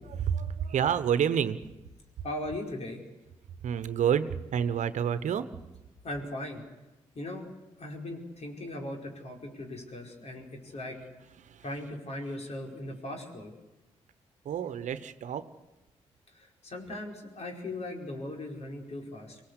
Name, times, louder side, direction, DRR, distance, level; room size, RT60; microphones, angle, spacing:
voice 1, 0.1-1.7 3.6-5.5 11.4-11.6 14.4-15.5, right 8 dB, 70° right, 13 dB, 1.1 m, -29 dB
voice 2, 2.2-3.0 6.0-6.6 7.2-7.5 7.8-11.0 11.6-13.5 16.3-19.4, left 1 dB, 55° left, 1 dB, 5.2 m, -38 dB
24.5 x 18.5 x 8.3 m, 1.1 s
supercardioid pair, 45°, 13 cm